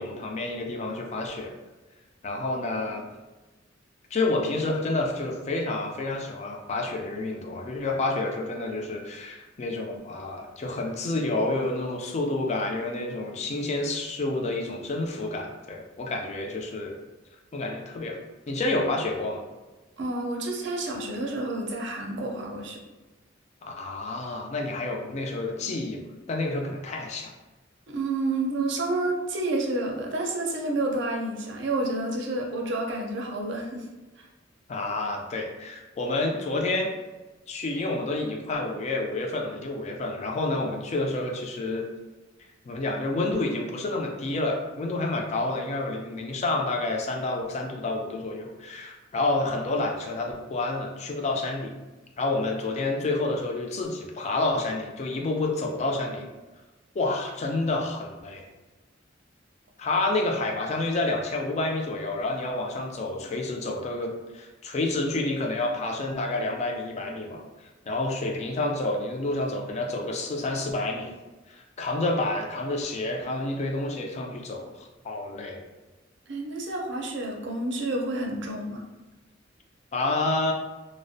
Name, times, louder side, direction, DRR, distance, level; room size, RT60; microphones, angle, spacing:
voice 1, 0.0-1.5 2.2-3.1 4.1-17.0 17.5-18.2 18.5-19.4 23.6-26.0 26.3-27.3 34.7-36.9 37.5-41.8 42.7-51.7 52.2-56.3 56.9-58.5 59.8-71.1 71.5-75.6 79.9-80.5, left 2 dB, 35° left, 1 dB, 0.4 m, -29 dB
voice 2, 20.0-22.8 27.9-33.9 34.2-34.3 76.3-78.8, right 2 dB, 65° right, 0 dB, 0.5 m, -29 dB
2.4 x 2.0 x 2.5 m, 1.2 s
head